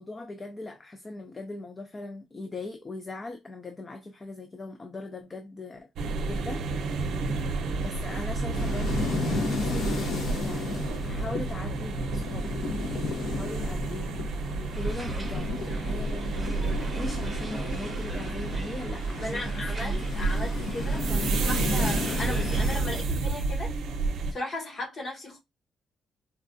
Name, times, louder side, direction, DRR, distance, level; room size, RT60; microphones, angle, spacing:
voice 1, 0.0-5.9 6.2-7.0 7.8-12.6 13.0-20.1 20.4-20.8, left 2 dB, 20° left, 0.3 m, -40 dB
sound 1, 6.0-24.3, right 3 dB, 80° right, 0.6 m, -30 dB
sound 2, 8.5-23.0, left 3 dB, 65° left, 0.7 m, -34 dB
sound 3, 14.7-22.8, right 1 dB, 5° right, 0.7 m, -44 dB
voice 2, 19.2-23.8 24.3-25.4, left 1 dB, 35° left, 1.0 m, -36 dB
4.0 x 2.3 x 2.5 m
cardioid pair, 170°, 0 cm